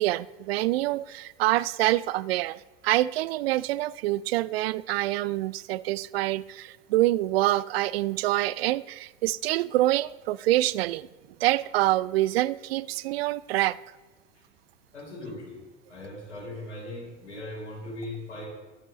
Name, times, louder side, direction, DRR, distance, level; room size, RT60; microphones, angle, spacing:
voice 1, 0.0-11.1 11.4-13.8, right 16 dB, 60° right, 0.5 m, -26 dB
voice 2, 14.9-15.6 15.9-18.5, left 1 dB, 90° left, 3.9 m, -39 dB
22.0 x 8.5 x 3.2 m
hypercardioid pair, 90°, 34 cm